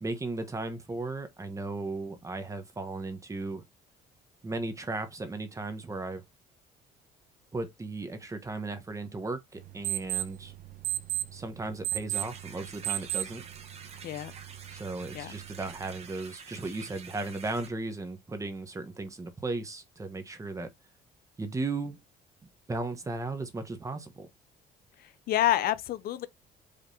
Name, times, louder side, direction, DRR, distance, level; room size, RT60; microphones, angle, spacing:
voice 1, 0.0-3.6 4.4-6.2 7.5-10.5 11.3-13.4 14.7-20.7 21.4-22.0 22.7-24.3, right 3 dB, 20° right, 1.2 m, -36 dB
sound 1, 9.6-16.1, right 13 dB, 55° right, 0.9 m, -36 dB
sound 2, 12.1-17.7, right 6 dB, 40° right, 1.2 m, -48 dB
voice 2, 25.3-26.3, left 12 dB, 65° left, 0.5 m, -27 dB
5.1 x 3.6 x 2.8 m
cardioid pair, 110°, 17 cm